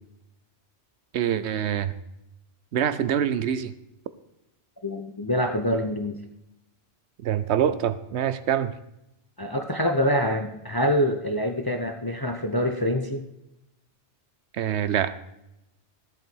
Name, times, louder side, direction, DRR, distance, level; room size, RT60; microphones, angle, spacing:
voice 1, 1.1-1.9 2.7-3.7 7.2-8.7 14.5-15.1, right 9 dB, 80° right, 14 dB, 0.9 m, -25 dB
voice 2, 4.8-6.2 9.4-13.2, equal, 25° left, 6 dB, 0.7 m, -25 dB
14.0 x 7.7 x 4.5 m, 0.87 s
omnidirectional pair, 1.1 m